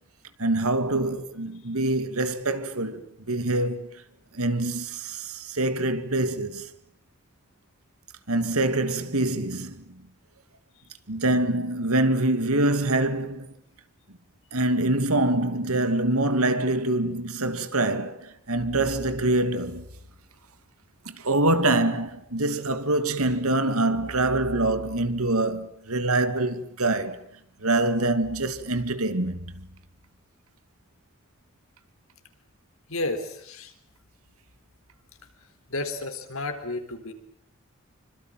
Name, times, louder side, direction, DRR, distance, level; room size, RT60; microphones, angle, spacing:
voice 1, 0.4-3.0 3.3-4.0 4.3-6.7 8.3-9.9 11.1-13.5 14.5-19.9 21.1-27.2 27.6-29.7, right 2 dB, 85° right, 2.4 m, -25 dB
voice 2, 32.9-33.7 35.7-37.1, left 2 dB, 70° left, 4.0 m, -31 dB
27.0 x 25.0 x 7.7 m
head